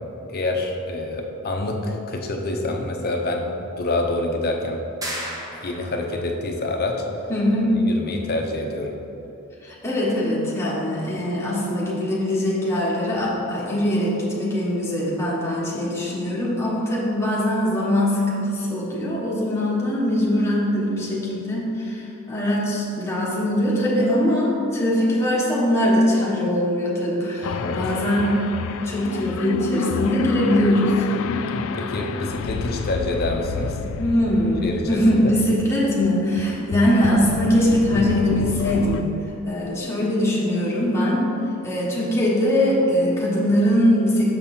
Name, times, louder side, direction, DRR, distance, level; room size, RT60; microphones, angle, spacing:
voice 1, 0.3-3.5 3.8-4.8 5.6-7.0 7.7-8.9 27.6-27.8 31.5-33.8 34.6-35.3, left 2 dB, 45° left, 2 dB, 0.7 m, -27 dB
sound 1, 5.0-6.1, equal, 15° right, 0.9 m, -32 dB
voice 2, 7.3-7.8 9.6-28.5 28.8-31.1 34.0-39.1 39.4-41.3 41.6-44.3, equal, 10° left, -7 dB, 1.3 m, -22 dB
sound 2, 27.4-39.0, left 5 dB, 60° left, 0.3 m, -29 dB
6.6 x 5.4 x 4.3 m, 2.9 s
head